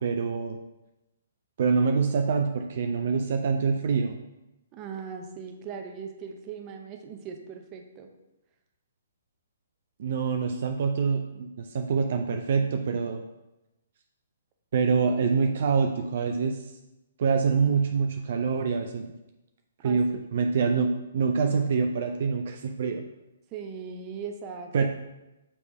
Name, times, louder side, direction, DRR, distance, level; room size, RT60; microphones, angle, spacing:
voice 1, 0.0-0.6 1.6-4.1 10.0-13.2 14.7-16.6 17.2-19.1 19.8-23.0 24.7-24.9, right 5 dB, 55° right, 4 dB, 0.5 m, -25 dB
voice 2, 4.7-8.1 12.9-13.0 19.8-20.0 23.5-24.9, right 6 dB, 30° right, 4 dB, 0.8 m, -39 dB
7.1 x 3.3 x 4.2 m, 0.98 s
figure-of-eight pair, 130°, 0 cm